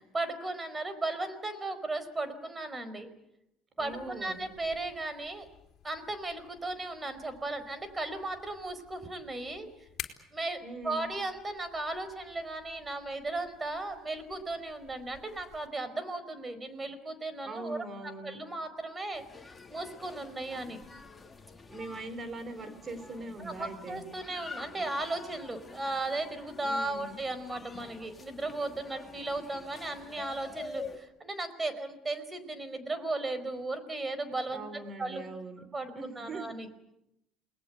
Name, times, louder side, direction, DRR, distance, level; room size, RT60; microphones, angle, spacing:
voice 1, 0.1-3.1 3.8-5.5 5.8-9.7 10.3-17.8 18.0-19.2 19.7-20.8 23.4-34.7 35.0-35.2 35.7-36.7, right 2 dB, 20° right, 12 dB, 4.8 m, -36 dB
sound 1, 3.8-15.7, left 10 dB, 55° left, 3.8 m, -52 dB
voice 2, 3.8-4.4 10.6-11.1 17.4-18.4 21.7-24.0 26.6-27.2 34.5-35.7 35.9-36.5, right 2 dB, 35° right, 11 dB, 4.8 m, -41 dB
sound 2, 19.1-31.0, left 4 dB, 20° left, 2.9 m, -47 dB
29.0 x 20.5 x 8.2 m, 0.84 s
supercardioid pair, 80°, 0 cm